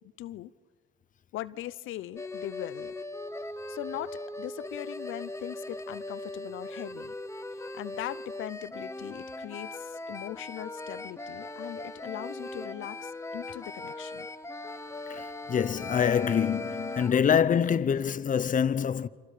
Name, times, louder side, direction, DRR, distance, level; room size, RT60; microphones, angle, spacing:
voice 1, 0.2-0.5 1.3-2.9 3.7-7.1 7.7-14.3, left 14 dB, 85° left, 0.7 m, -40 dB
sound 1, 2.2-17.2, left 2 dB, 15° left, 1.0 m, -39 dB
voice 2, 15.1-19.1, left 8 dB, 40° left, 0.7 m, -25 dB
28.5 x 26.0 x 5.0 m
cardioid pair, 90°, 20 cm